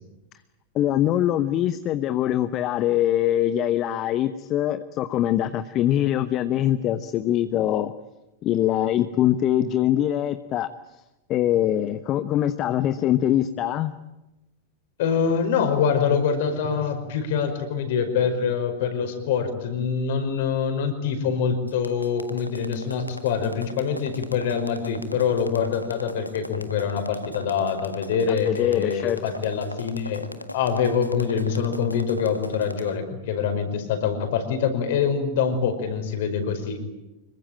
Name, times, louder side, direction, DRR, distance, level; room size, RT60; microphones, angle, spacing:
voice 1, 0.7-7.9 8.4-10.7 11.3-13.9 28.3-29.2, left 12 dB, 35° left, 12 dB, 1.0 m, -23 dB
voice 2, 15.0-36.8, left 6 dB, 55° left, 7 dB, 5.3 m, -25 dB
sound 1, 21.7-32.9, left 1 dB, 85° left, 1.5 m, -38 dB
26.0 x 23.0 x 9.0 m, 0.98 s
figure-of-eight pair, 90°, 0 cm